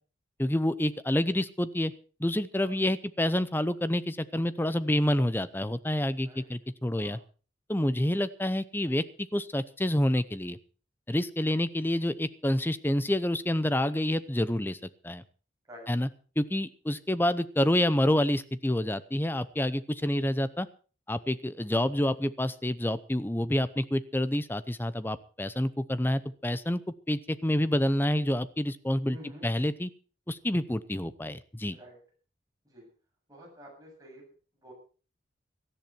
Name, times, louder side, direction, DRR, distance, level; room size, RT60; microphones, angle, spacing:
voice 1, 0.4-1.9 2.2-7.2 7.7-9.0 9.3-10.6 11.1-14.8 15.0-15.2 15.9-16.1 16.4-20.7 21.1-26.8 27.1-29.2 29.4-29.9 30.3-31.8, left 1 dB, 10° left, 15 dB, 0.7 m, -28 dB
voice 2, 29.1-29.5 31.8-32.0 32.7-32.9 33.3-34.2 34.6-34.7, equal, 20° right, -2 dB, 8.0 m, -48 dB
17.5 x 13.5 x 4.5 m, 0.38 s
head